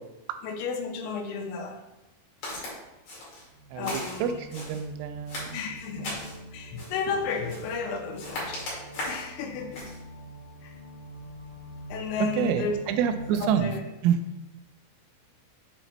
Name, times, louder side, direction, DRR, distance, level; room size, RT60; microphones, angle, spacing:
voice 1, 0.4-1.8 3.7-4.4 5.5-6.2 6.5-8.8 9.1-9.9 10.6-10.8 11.9-12.8 13.4-13.8, left 5 dB, 80° left, 3 dB, 3.3 m, -33 dB
Walk footsteps, 2.4-2.7 3.1-3.5 3.8-4.8 5.3-6.4 6.8-7.1 7.5-7.8 8.1-9.3 9.7-10.0, left 2 dB, 45° left, 2.8 m, -37 dB
sound 1, 3.5-13.6, right 1 dB, 30° right, 1.4 m, -44 dB
voice 2, 3.7-5.6 6.0-6.1 12.4-13.7 14.0-14.2, right 8 dB, 85° right, 9 dB, 3.1 m, -27 dB
7.9 x 5.8 x 3.0 m, 0.98 s
omnidirectional pair, 5.8 m